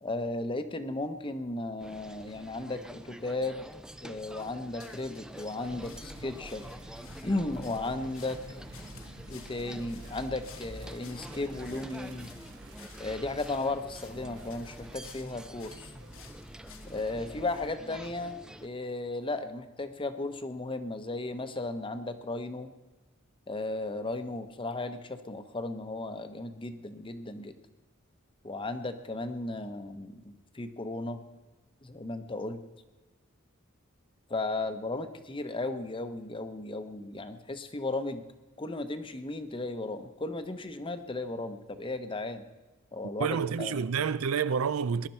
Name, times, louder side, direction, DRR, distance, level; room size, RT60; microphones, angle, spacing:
voice 1, 0.0-3.7 4.0-6.6 7.2-8.4 9.3-12.3 13.0-15.9 16.9-22.7 23.5-27.5 28.4-31.2 31.8-32.6 34.3-38.2 38.6-42.4 42.9-43.8, left 2 dB, 25° left, 0.8 m, -35 dB
sound 1, 1.8-18.7, right 1 dB, 5° right, 0.4 m, -48 dB
sound 2, 4.3-17.2, left 7 dB, 75° left, 1.4 m, -56 dB
sound 3, 5.6-17.7, right 1 dB, 60° right, 1.7 m, -48 dB
voice 2, 43.2-45.1, right 6 dB, 85° right, 0.5 m, -28 dB
20.5 x 11.0 x 4.4 m
head